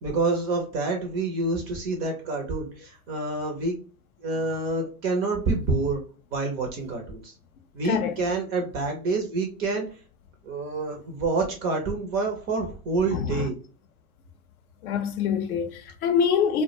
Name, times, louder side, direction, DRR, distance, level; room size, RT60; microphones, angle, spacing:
voice 1, 0.0-3.8 4.2-6.0 6.3-7.3 7.7-9.9 10.4-13.5, right 3 dB, 25° right, 0.3 m, -27 dB
voice 2, 13.1-13.5 14.8-16.6, left 7 dB, 75° left, 0.6 m, -25 dB
2.2 x 2.0 x 2.7 m
hypercardioid pair, 110°, 44 cm